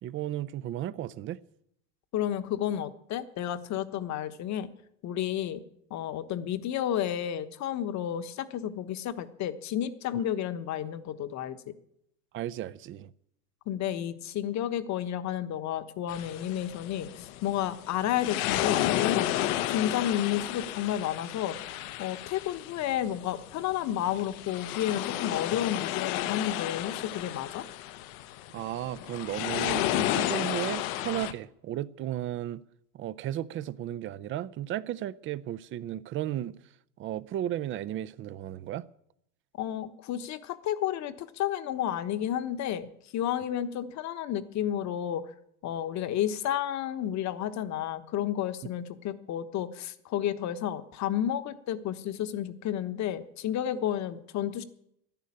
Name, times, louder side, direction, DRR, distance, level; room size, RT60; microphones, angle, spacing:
voice 1, 0.0-1.4 12.3-13.1 28.5-32.6 32.9-36.6 37.0-38.9, right 12 dB, 30° right, 0.5 m, -34 dB
voice 2, 2.1-4.7 5.0-5.6 5.9-11.6 13.7-21.7 22.0-27.6 39.5-45.3 45.6-54.6, left 11 dB, 40° left, 1.2 m, -31 dB
sound 1, 16.1-31.3, left 14 dB, 65° left, 1.0 m, -32 dB
11.0 x 10.5 x 8.7 m
supercardioid pair, 120°, 44 cm